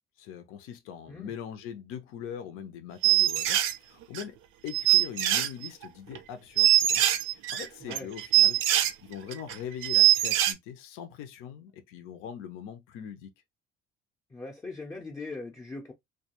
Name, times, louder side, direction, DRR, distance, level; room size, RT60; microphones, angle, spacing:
voice 1, 0.2-4.4 4.6-7.0 7.3-13.3, left 8 dB, 85° left, 0.6 m, -41 dB
sound 1, 3.0-3.8 4.1-4.2 4.7-5.8 6.2-6.3 6.6-8.9 9.3-9.5 9.8-10.5, right 14 dB, 75° right, 0.4 m, -22 dB
voice 2, 14.3-15.9, left 3 dB, 15° left, 0.5 m, -40 dB
2.3 x 2.2 x 2.8 m
cardioid pair, 125°, 21 cm